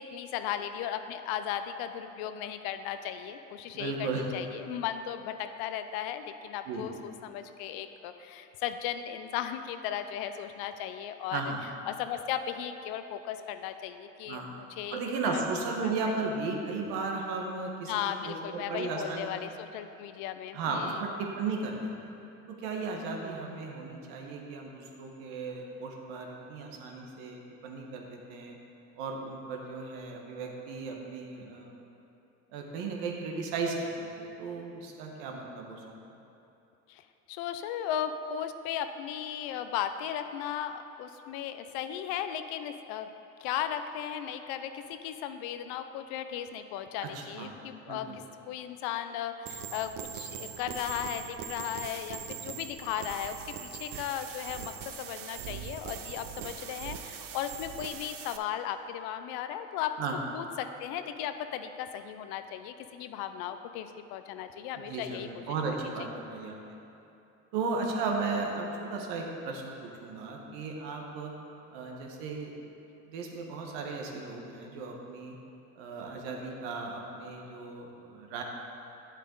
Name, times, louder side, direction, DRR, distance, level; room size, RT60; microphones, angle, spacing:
voice 1, 0.0-11.4 11.9-15.4 15.8-15.9 17.9-21.1 36.9-43.1 43.4-60.0 60.3-65.4, left 10 dB, 75° left, 9 dB, 0.6 m, -36 dB
voice 2, 3.7-4.2 6.7-6.8 11.3-11.6 14.3-14.5 14.9-17.9 18.2-19.3 20.5-22.1 22.5-28.6 28.9-31.8 32.5-35.8 47.1-47.5 47.9-48.2 60.0-60.1 64.7-66.6 67.5-71.3 71.7-72.7 73.1-75.3 75.8-78.4, right 4 dB, 80° right, 1 dB, 1.3 m, -35 dB
sound 1, 49.5-58.4, right 9 dB, 60° right, 0.7 m, -41 dB
9.3 x 7.3 x 3.8 m, 2.8 s
hypercardioid pair, 70°, 38 cm